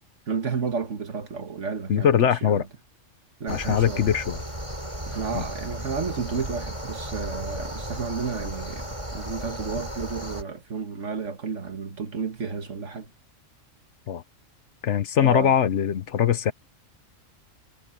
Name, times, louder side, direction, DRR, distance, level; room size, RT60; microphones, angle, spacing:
voice 1, 0.3-2.1 2.4-2.6 3.4-4.0 5.1-13.1 15.2-15.5, right 5 dB, 65° right, 1.9 m, -32 dB
voice 2, 1.9-2.7 3.5-4.4 5.3-5.4 14.1-14.2 14.8-16.5, left 9 dB, 65° left, 1.1 m, -22 dB
sound 1, 3.5-10.4, equal, 25° right, 7.2 m, -35 dB
omnidirectional pair, 1.3 m